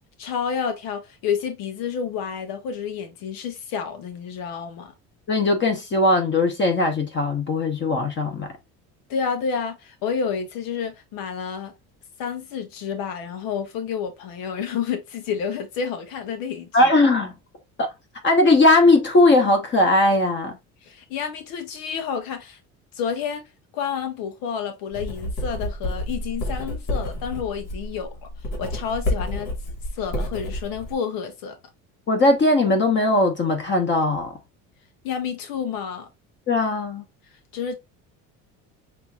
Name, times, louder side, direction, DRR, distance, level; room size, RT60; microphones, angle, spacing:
voice 1, 0.2-4.9 9.1-11.7 12.2-16.9 20.8-22.6 22.9-23.4 23.7-28.3 28.6-29.5 29.9-31.6 35.0-36.1 37.5-37.8, left 7 dB, 80° left, 1.1 m, -29 dB
voice 2, 5.3-8.5 16.7-17.3 17.8-17.9 18.2-20.6 32.1-34.3 36.5-37.0, left 2 dB, 30° left, 1.2 m, -19 dB
Writing, 24.9-30.9, left 1 dB, 60° left, 2.4 m, -29 dB
6.7 x 2.8 x 2.4 m
cardioid pair, 140°, 35 cm